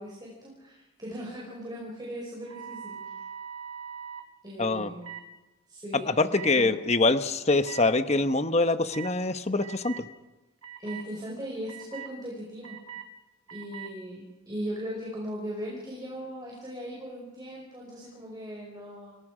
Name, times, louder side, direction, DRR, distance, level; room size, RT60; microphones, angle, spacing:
voice 1, 0.0-3.0 4.4-5.2 5.7-6.1 6.5-6.8 10.8-12.8 13.5-19.2, equal, 20° right, -3 dB, 5.3 m, -38 dB
sound 1, 2.4-4.2 5.0-5.2 6.3-6.5 7.6-7.8 8.9-9.1 9.6-10.0 10.6-11.0 11.7-12.1 12.6-13.1 13.5-13.9, right 8 dB, 85° right, 1.7 m, -41 dB
voice 2, 4.6-4.9 5.9-10.1, left 3 dB, 30° left, 10 dB, 1.0 m, -24 dB
29.5 x 20.5 x 5.0 m, 1.1 s
head